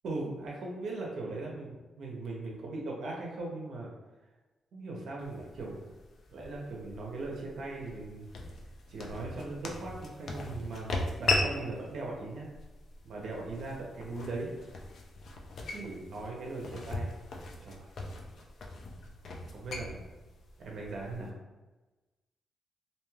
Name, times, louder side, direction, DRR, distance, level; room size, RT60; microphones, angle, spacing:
voice 1, 0.0-3.9 4.7-5.9 6.3-8.3 8.9-12.5 13.0-14.5 15.7-17.1 17.6-17.9 19.5-20.0 20.6-21.3, right 2 dB, 65° right, -2 dB, 0.6 m, -39 dB
sound 1, 5.2-21.3, left 2 dB, 55° left, 0.4 m, -38 dB
2.6 x 2.2 x 3.1 m, 1.2 s
wide cardioid pair, 165°, 0 cm